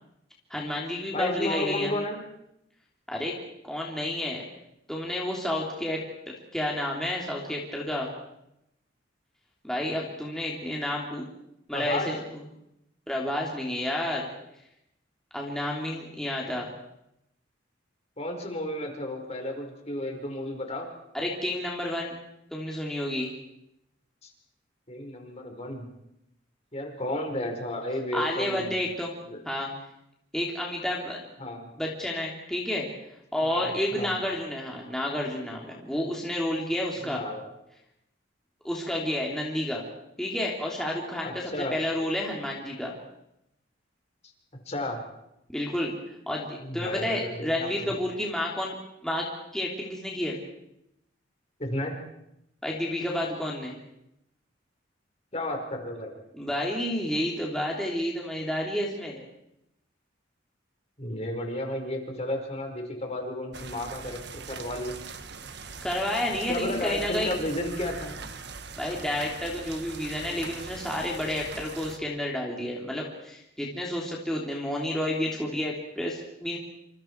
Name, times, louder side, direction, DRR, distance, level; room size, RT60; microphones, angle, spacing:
voice 1, 0.5-1.9 3.1-3.3 3.6-4.4 4.9-6.0 6.5-8.1 9.6-11.2 11.7-12.2 13.1-14.3 15.3-16.7 21.1-22.1 22.5-23.3 28.1-29.1 29.4-29.7 30.3-31.2 31.8-32.9 33.3-37.2 38.6-39.8 40.2-42.9 45.5-45.9 46.3-48.8 49.0-49.2 49.5-50.4 52.6-53.8 56.3-59.2 65.8-67.3 68.8-76.6, left 1 dB, 5° left, -3 dB, 3.2 m, -30 dB
voice 2, 1.1-2.2 11.7-12.1 18.2-20.9 24.2-24.3 24.9-25.8 26.7-28.8 29.3-29.4 31.4-31.7 33.4-34.1 37.0-37.5 41.2-41.8 44.6-45.0 46.6-48.0 51.6-51.9 55.3-56.1 61.0-65.0 66.5-68.1, left 1 dB, 35° left, 3 dB, 4.9 m, -33 dB
sound 1, 63.5-72.0, right 4 dB, 60° right, 1.6 m, -41 dB
28.0 x 27.0 x 4.7 m, 0.83 s
head